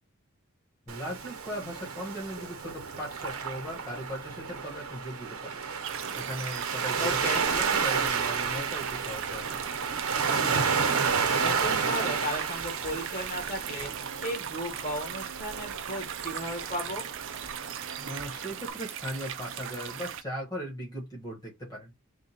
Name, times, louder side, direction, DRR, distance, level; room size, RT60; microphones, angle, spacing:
voice 1, 0.9-5.6 6.1-9.6 18.0-21.9, equal, 20° left, 1.3 m, -38 dB
Waves surf, 0.9-18.7, right 6 dB, 80° right, 0.8 m, -31 dB
sound 1, 5.8-20.2, right 9 dB, 60° right, 0.5 m, -38 dB
voice 2, 7.0-7.5 11.3-13.9 14.2-17.1, equal, 40° left, 1.6 m, -35 dB
3.6 x 2.2 x 4.2 m
head